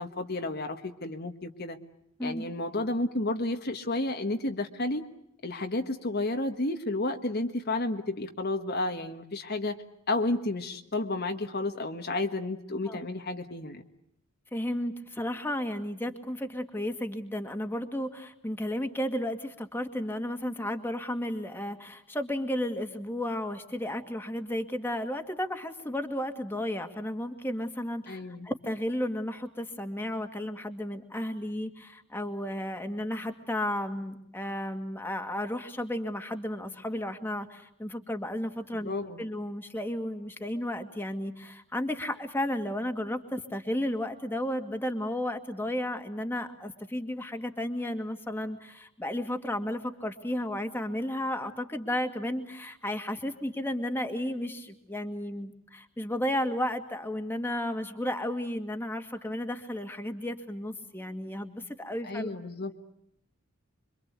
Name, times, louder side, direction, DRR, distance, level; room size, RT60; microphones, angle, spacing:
voice 1, 0.0-1.8 2.2-5.0 5.4-9.8 10.1-13.8 28.1-28.5 38.8-39.2 62.1-62.7, left 2 dB, 50° left, 5 dB, 1.5 m, -31 dB
voice 2, 14.5-38.9 39.2-62.3, left 1 dB, 10° left, 5 dB, 2.1 m, -33 dB
26.5 x 24.5 x 8.3 m, 0.75 s
head